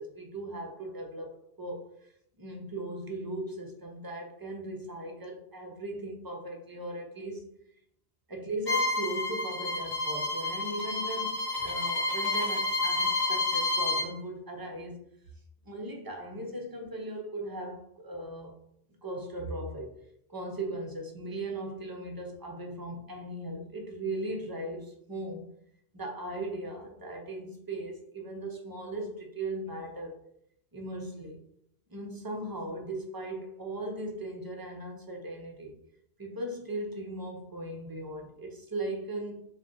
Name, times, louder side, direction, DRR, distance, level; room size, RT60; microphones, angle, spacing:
voice 1, 0.0-2.1 2.4-7.5 8.3-15.0 15.6-18.6 19.0-20.0 20.3-25.5 25.9-30.2 30.7-31.4 31.9-35.7 36.2-39.5, right 1 dB, 25° right, 0.6 m, -38 dB
Bowed string instrument, 8.7-14.1, left 2 dB, 45° left, 1.0 m, -29 dB
3.8 x 2.3 x 3.7 m
omnidirectional pair, 1.1 m